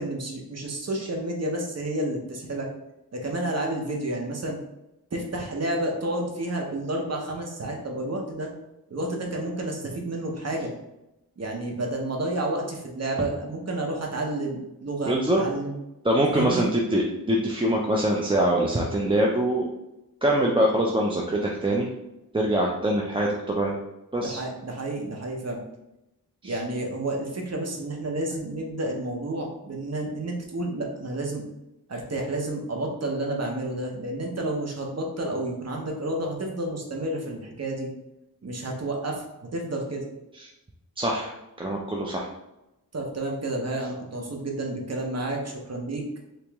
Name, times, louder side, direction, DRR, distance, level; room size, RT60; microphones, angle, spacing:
voice 1, 0.0-2.7 3.1-4.6 5.1-8.5 8.9-10.7 11.4-15.7 16.3-16.7 24.2-25.6 26.4-31.4 31.9-37.9 38.4-40.0 42.9-46.2, right 1 dB, 45° right, 0 dB, 0.8 m, -30 dB
voice 2, 15.1-15.4 16.0-19.7 20.2-21.9 22.3-23.7 24.1-24.4 26.4-26.6 41.0-41.3 41.6-42.3, right 1 dB, 15° right, -2 dB, 0.4 m, -24 dB
3.0 x 3.0 x 3.4 m, 0.92 s
wide cardioid pair, 80°, 36 cm